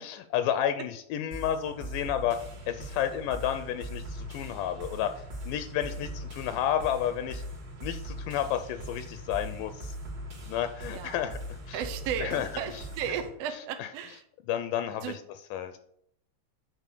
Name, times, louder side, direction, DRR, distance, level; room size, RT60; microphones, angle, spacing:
voice 1, 0.0-2.4 2.7-5.1 5.5-7.4 7.8-9.9 10.5-11.4 11.7-11.8 12.2-12.5 14.5-15.2 15.5-15.8, left 10 dB, 80° left, 9 dB, 2.1 m, -31 dB
sound 1, 1.3-13.3, equal, 35° right, 2.5 m, -40 dB
voice 2, 5.8-6.2 10.8-11.2 11.7-14.2 15.0-15.2, right 8 dB, 80° right, 6 dB, 1.4 m, -35 dB
8.1 x 4.0 x 6.8 m, 0.71 s
omnidirectional pair, 3.8 m